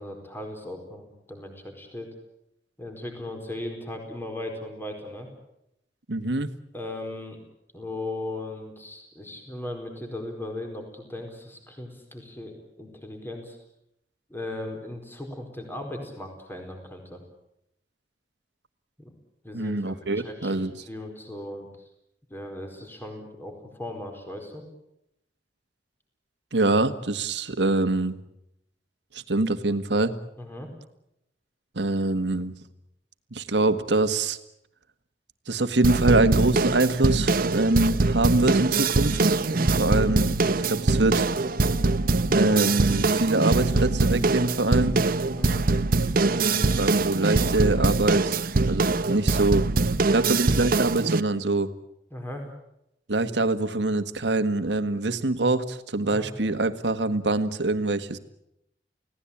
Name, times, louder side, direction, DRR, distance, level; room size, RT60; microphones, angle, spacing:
voice 1, 0.0-2.1 2.8-5.3 6.7-7.4 7.7-13.6 14.3-17.2 19.0-19.1 19.4-21.7 22.3-24.6 30.4-30.7 39.5-39.8 45.3-45.6 52.1-52.5 56.0-56.3, left 1 dB, 15° left, 4 dB, 4.6 m, -37 dB
voice 2, 6.1-6.5 19.5-20.7 26.5-28.2 29.1-30.1 31.7-32.5 33.3-34.4 35.5-39.4 39.8-41.3 42.3-45.0 46.3-49.7 50.1-51.7 53.1-58.2, right 2 dB, 80° right, 9 dB, 1.7 m, -24 dB
sound 1, 35.8-51.2, right 3 dB, 55° right, 0.9 m, -23 dB
29.5 x 17.5 x 8.7 m, 0.81 s
head